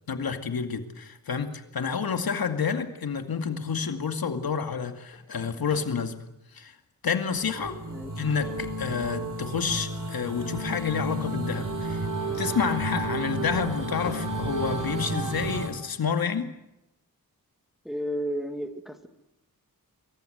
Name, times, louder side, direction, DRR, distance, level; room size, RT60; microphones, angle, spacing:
voice 1, 0.1-6.2 6.5-6.8 7.0-7.8 8.2-12.1 12.3-16.5, left 6 dB, 80° left, 6 dB, 2.4 m, -29 dB
sound 1, 5.1-6.0 7.1-7.5 7.9-8.5 9.3-9.4 10.9-12.2 13.2-14.3, left 2 dB, 40° left, 7.3 m, -45 dB
sound 2, 7.4-15.7, right 1 dB, 60° right, 4.0 m, -32 dB
voice 2, 7.7-8.2 17.8-19.1, equal, ahead, 6 dB, 2.1 m, -33 dB
25.0 x 23.5 x 8.0 m, 0.90 s
wide cardioid pair, 120°, 36 cm